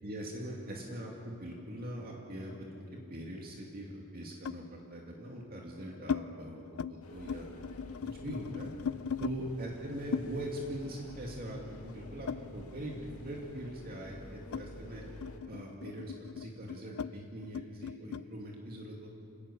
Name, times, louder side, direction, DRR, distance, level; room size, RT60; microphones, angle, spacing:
voice 1, 0.0-7.5 8.0-8.7 9.2-15.0 15.5-19.1, equal, 45° right, -1 dB, 2.5 m, -42 dB
sound 1, 1.6-3.2 4.4-4.7 5.4-6.2 6.6-6.9 7.2-9.4 10.1-13.0 13.3-18.3, left 7 dB, 70° left, 0.4 m, -40 dB
sound 2, 7.0-15.4, left 1 dB, 85° left, 1.9 m, -49 dB
26.5 x 18.5 x 7.1 m, 2.6 s
head